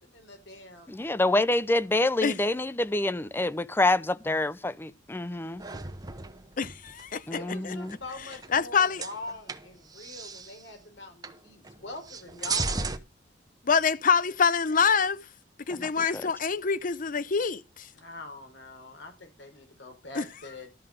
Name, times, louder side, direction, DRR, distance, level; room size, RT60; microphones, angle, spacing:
voice 1, 0.0-1.0 7.3-12.9 17.9-20.7, left 2 dB, 75° left, 4.3 m, -43 dB
voice 2, 0.9-5.7 7.3-8.0 15.7-15.9, left 2 dB, 10° left, 0.5 m, -27 dB
sound 1, 5.6-7.1 7.9-8.7 9.0-10.6 11.2-11.4 11.6-13.0, right 4 dB, 20° right, 1.1 m, -35 dB
voice 3, 6.6-7.4 7.6-7.8 8.5-9.0 13.6-15.2 15.7-17.9 20.1-20.2, left 6 dB, 50° left, 0.7 m, -25 dB
13.0 x 5.7 x 6.3 m
head